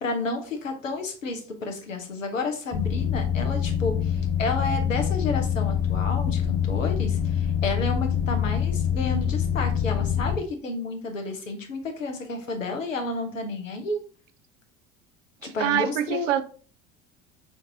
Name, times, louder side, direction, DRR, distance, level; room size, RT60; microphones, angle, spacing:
voice 1, 0.0-14.0 15.5-16.3, left 3 dB, 85° left, 4 dB, 0.8 m, -31 dB
sound 1, 2.7-10.4, left 8 dB, 25° left, 0.4 m, -25 dB
voice 2, 15.4-16.4, right 11 dB, 70° right, 11 dB, 0.6 m, -25 dB
5.8 x 2.6 x 2.7 m, 0.41 s
figure-of-eight pair, 70°, 38 cm